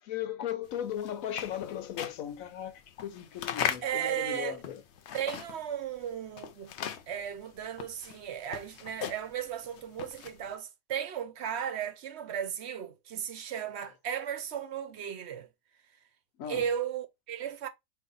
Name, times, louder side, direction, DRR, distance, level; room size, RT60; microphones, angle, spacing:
voice 1, 0.1-4.8 16.4-16.6, left 10 dB, 80° left, 1.1 m, -37 dB
sound 1, 0.8-5.8 6.0-10.5, left 9 dB, 65° left, 0.8 m, -38 dB
voice 2, 3.8-4.6 5.1-6.7 7.1-15.5 16.5-17.7, right 9 dB, 60° right, 0.8 m, -35 dB
4.6 x 2.7 x 3.8 m
omnidirectional pair, 1.4 m